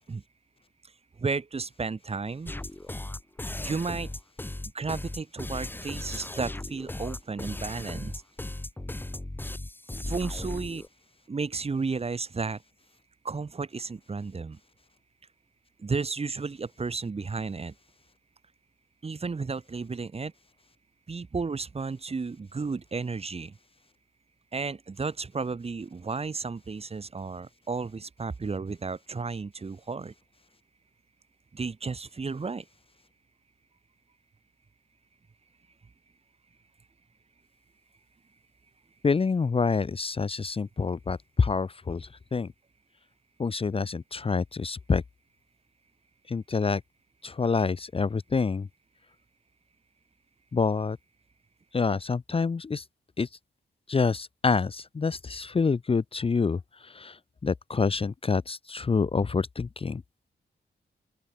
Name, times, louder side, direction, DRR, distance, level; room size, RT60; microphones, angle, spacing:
voice 1, 1.2-2.5 3.6-4.1 4.7-8.1 10.0-10.8 11.3-12.6 13.2-14.6 15.8-17.7 19.0-20.3 21.1-23.6 24.5-30.1 31.5-32.6, right 4 dB, 35° right, 4.5 m, -33 dB
sound 1, 2.5-10.9, left 1 dB, 10° left, 1.9 m, -37 dB
voice 2, 39.0-42.5 43.4-45.0 46.3-46.8 47.2-48.7 50.5-51.0 51.7-52.8 53.2-53.3 53.9-60.0, left 4 dB, 30° left, 0.9 m, -27 dB
open air
wide cardioid pair, 165°, 18 cm